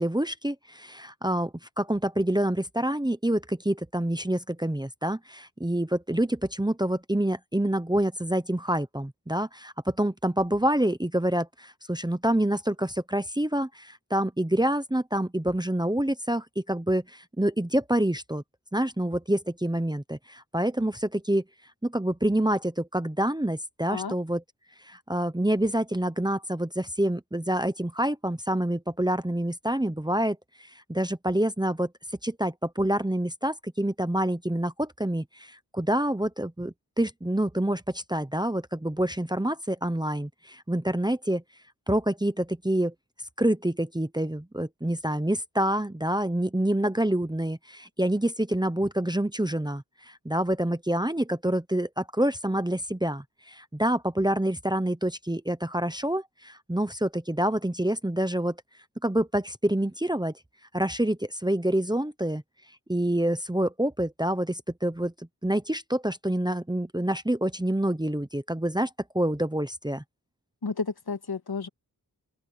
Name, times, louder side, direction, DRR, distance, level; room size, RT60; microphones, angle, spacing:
voice 1, 0.0-18.4 18.7-21.4 21.8-24.4 24.9-31.9 32.2-41.4 41.9-42.9 43.4-58.5 59.0-60.3 60.7-62.4 62.9-65.1 65.4-68.9 69.1-70.0, right 1 dB, 10° right, 0.9 m, -27 dB
voice 2, 70.6-71.7, left 4 dB, 70° left, 2.1 m, -31 dB
open air
wide cardioid pair, 65°, 39 cm